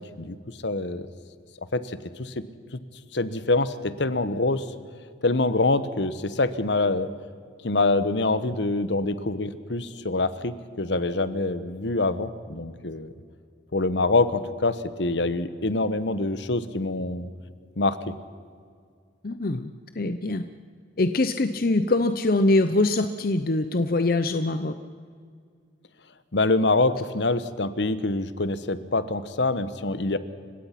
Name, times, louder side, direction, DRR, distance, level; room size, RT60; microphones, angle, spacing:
voice 1, 0.6-1.1 1.7-2.4 2.7-2.8 3.1-4.6 5.2-7.1 7.6-13.1 13.7-17.3 17.8-18.1 26.3-30.2, left 2 dB, 70° left, 13 dB, 1.1 m, -25 dB
voice 2, 19.2-19.7 20.0-20.4 21.0-24.7, left 2 dB, 50° left, 10 dB, 0.7 m, -23 dB
29.5 x 16.5 x 5.9 m, 2.1 s
head